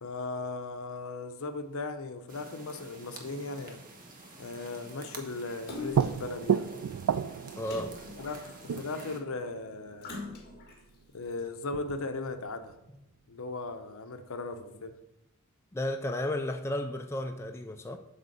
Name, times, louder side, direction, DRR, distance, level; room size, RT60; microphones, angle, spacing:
voice 1, 0.0-3.8 4.4-6.7 8.2-10.3 11.1-12.7 13.3-15.0, left 3 dB, 65° left, 0.7 m, -37 dB
sound 1, 2.3-9.2, right 2 dB, 40° right, 1.1 m, -50 dB
sound 2, 5.4-5.5 5.9-10.8 11.3-11.4 11.7-12.7, right 7 dB, 80° right, 0.3 m, -33 dB
Splash splatter, 5.7-6.3 7.6-8.9 10.0-10.8 11.4-11.5, left 2 dB, 45° left, 1.6 m, -42 dB
voice 2, 7.6-8.0 15.7-18.0, left 1 dB, 10° left, 0.4 m, -33 dB
8.0 x 3.7 x 6.6 m
head